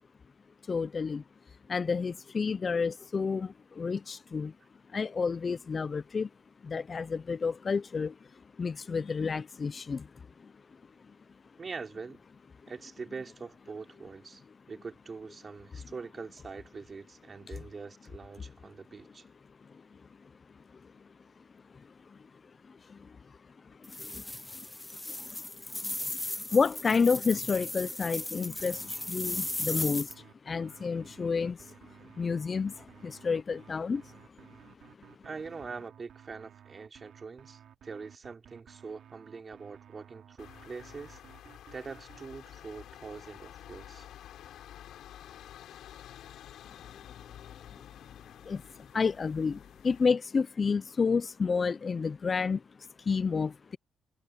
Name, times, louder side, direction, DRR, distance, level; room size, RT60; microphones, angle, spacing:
voice 1, 0.7-1.2 1.7-4.5 4.9-6.3 6.6-8.2 8.6-10.1 10.4-10.5 21.7-21.8 22.1-22.2 22.7-23.2 23.8-24.7 25.1-25.4 25.7-31.9 32.2-34.1 47.7-47.8 48.4-53.8, left 5 dB, 35° left, 0.4 m, -31 dB
voice 2, 11.6-12.2 12.6-19.2 35.2-41.2 41.7-44.1, right 4 dB, 35° right, 3.3 m, -43 dB
sound 1, 23.8-30.1, left 1 dB, 10° left, 0.8 m, -37 dB
sound 2, 28.6-42.3, right 9 dB, 65° right, 3.8 m, -55 dB
sound 3, 40.4-50.1, left 11 dB, 75° left, 6.3 m, -50 dB
cardioid pair, 100°, 0 cm